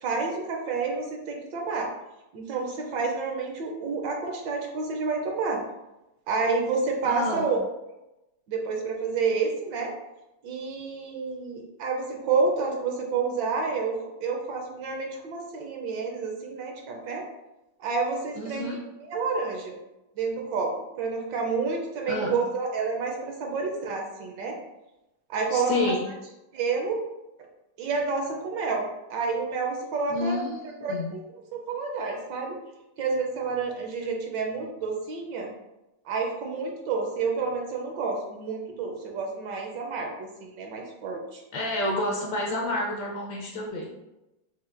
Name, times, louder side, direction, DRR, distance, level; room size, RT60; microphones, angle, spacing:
voice 1, 0.0-1.9 2.3-5.6 6.3-7.6 8.5-9.9 10.4-14.0 14.2-17.2 17.8-18.8 19.1-19.8 20.2-20.7 21.0-24.5 25.3-25.9 26.5-27.0 27.8-31.2 31.5-32.6 33.0-35.5 36.1-41.4, right 4 dB, 70° right, 1 dB, 1.2 m, -29 dB
voice 2, 7.0-7.4 18.4-18.8 22.1-22.4 25.5-26.0 30.1-31.1 41.5-43.9, left 2 dB, 70° left, -1 dB, 1.1 m, -29 dB
5.7 x 2.5 x 2.4 m, 0.97 s
omnidirectional pair, 2.2 m